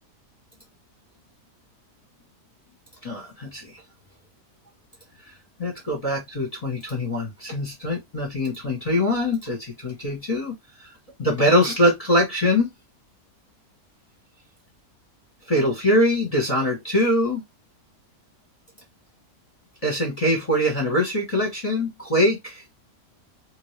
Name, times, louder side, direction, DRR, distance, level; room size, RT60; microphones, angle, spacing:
voice 1, 3.0-3.7 5.6-10.5 10.8-10.9 11.2-12.7 15.5-17.4 19.8-22.6, left 1 dB, 30° left, 0.9 m, -23 dB
2.9 x 2.7 x 3.1 m
omnidirectional pair, 1.6 m